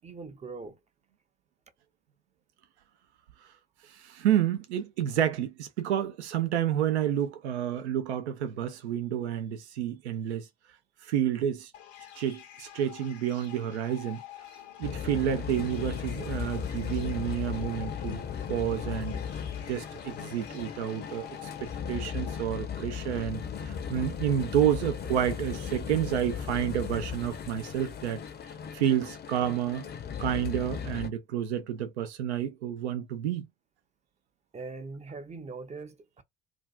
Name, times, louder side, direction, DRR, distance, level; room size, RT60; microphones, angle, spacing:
voice 1, 0.0-0.8 34.5-36.2, right 4 dB, 20° right, 0.5 m, -41 dB
voice 2, 3.8-10.5 11.0-11.7 12.2-14.2 14.8-18.2 18.5-19.2 19.7-28.2 28.7-29.9 30.2-33.5, right 10 dB, 80° right, 0.5 m, -30 dB
sound 1, 11.7-22.4, left 11 dB, 70° left, 0.7 m, -48 dB
sound 2, 14.8-31.1, left 7 dB, 30° left, 0.5 m, -36 dB
2.5 x 2.3 x 2.3 m
figure-of-eight pair, 55°, 33 cm